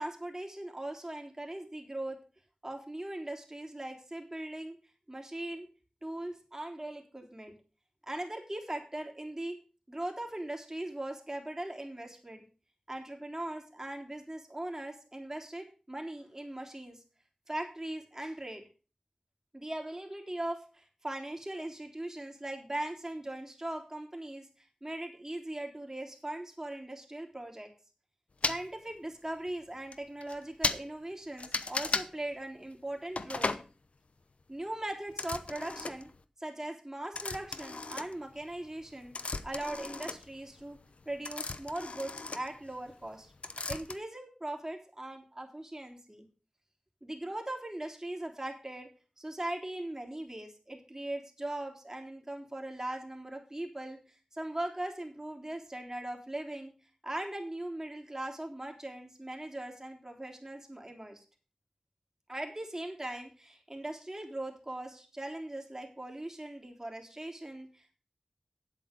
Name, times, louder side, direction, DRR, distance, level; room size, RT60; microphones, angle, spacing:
voice 1, 0.0-2.2 2.6-4.8 5.1-5.7 6.0-7.5 8.1-9.6 9.9-12.4 12.9-17.0 17.5-18.6 19.5-27.7 28.5-33.6 34.5-36.1 36.4-39.1 39.4-40.8 41.1-43.3 43.7-46.3 47.0-48.9 49.2-56.7 57.0-61.2 62.3-67.9, right 1 dB, 25° right, 2 dB, 3.6 m, -40 dB
sound 1, 28.4-28.6 29.5-29.6 29.9-30.0 30.2-30.4 30.6-30.8 31.4-32.1 33.2-33.7 35.1-36.2 37.1-38.5 38.8-43.1 43.4-44.0, left 3 dB, 80° left, 0.8 m, -35 dB
10.0 x 8.2 x 5.2 m, 0.35 s
wide cardioid pair, 45°, 2 cm